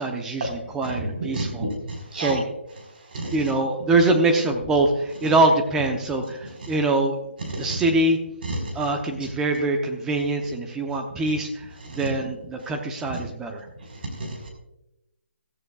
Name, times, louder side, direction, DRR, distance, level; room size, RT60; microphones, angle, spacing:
voice 1, 0.0-1.7 2.1-2.4 3.3-7.2 7.6-8.2 8.7-13.7, right 2 dB, 5° right, 3 dB, 0.8 m, -23 dB
voice 2, 14.2-14.5, right 2 dB, 50° right, 2 dB, 4.6 m, -30 dB
15.5 x 14.0 x 2.4 m, 0.89 s
hypercardioid pair, 165°, 7 cm